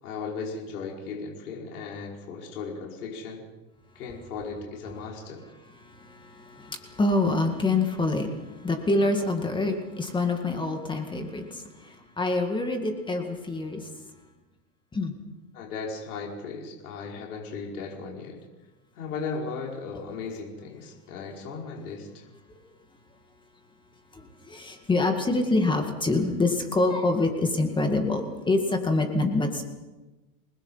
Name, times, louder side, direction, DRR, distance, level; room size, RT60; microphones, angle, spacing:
voice 1, 0.0-3.5 4.0-5.4 15.5-18.4 18.9-22.3, left 4 dB, 75° left, -1 dB, 5.3 m, -36 dB
voice 2, 5.8-13.9 14.9-15.2 22.5-22.6 24.1-29.6, left 2 dB, 10° left, 4 dB, 2.0 m, -26 dB
29.0 x 20.0 x 5.7 m, 1.1 s
supercardioid pair, 150°, 45 cm